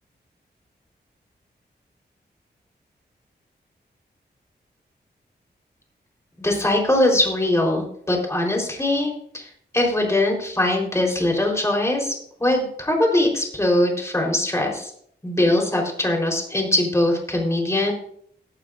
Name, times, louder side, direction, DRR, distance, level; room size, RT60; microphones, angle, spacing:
voice 1, 6.4-9.5 9.7-12.1 12.4-14.9 15.2-17.9, left 1 dB, 15° left, 0 dB, 4.1 m, -21 dB
17.5 x 12.0 x 2.6 m, 0.63 s
wide cardioid pair, 110°, 18 cm